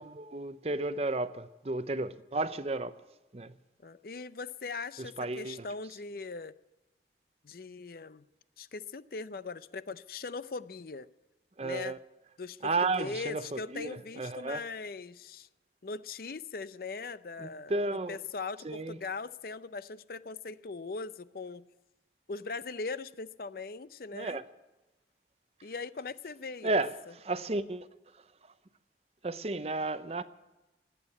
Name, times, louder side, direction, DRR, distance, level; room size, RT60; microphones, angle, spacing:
voice 1, 0.0-2.9 3.3-3.5 5.0-5.7 11.6-12.0 12.6-14.6 17.4-18.2 18.6-19.0 24.1-24.4 26.6-26.9 27.2-27.9 29.2-30.2, right 2 dB, 35° right, 0.6 m, -33 dB
voice 2, 3.8-6.5 7.4-8.2 8.6-11.1 11.6-11.9 12.4-12.6 13.0-15.5 15.8-17.8 18.1-21.7 22.3-24.4 25.6-26.8, left 4 dB, 55° left, 0.5 m, -40 dB
19.0 x 8.4 x 8.7 m
head